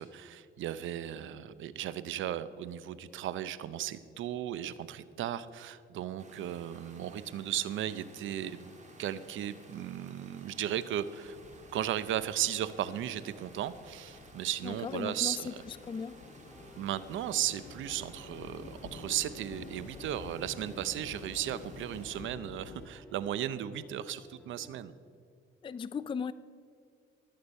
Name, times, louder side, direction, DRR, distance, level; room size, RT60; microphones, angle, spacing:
voice 1, 0.0-8.7 9.0-11.4 11.7-15.6 16.8-24.9, right 11 dB, 75° right, 15 dB, 0.6 m, -36 dB
sound 1, 6.2-22.2, right 1 dB, 35° right, 2.6 m, -55 dB
sound 2, 11.2-22.9, left 5 dB, 75° left, 1.3 m, -50 dB
voice 2, 14.6-16.1 25.6-26.3, left 6 dB, 25° left, 14 dB, 0.4 m, -37 dB
sound 3, 16.5-24.8, equal, 5° left, 1.3 m, -55 dB
19.5 x 8.6 x 5.4 m, 2.4 s
cardioid pair, 90°, 20 cm